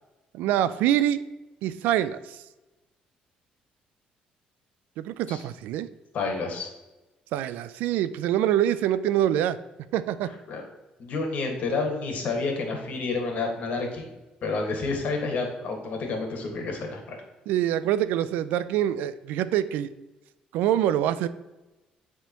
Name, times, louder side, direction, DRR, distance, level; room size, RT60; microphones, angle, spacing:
voice 1, 0.3-1.2 1.6-2.4 5.0-5.9 7.3-9.6 9.9-10.3 17.5-19.9 20.5-21.3, right 11 dB, 90° right, 14 dB, 0.4 m, -25 dB
voice 2, 6.1-6.7 10.5-10.6 11.0-14.1 14.4-17.2, left 3 dB, 60° left, 3 dB, 1.6 m, -29 dB
9.8 x 3.5 x 2.9 m, 1.1 s
cardioid pair, 100°, 3 cm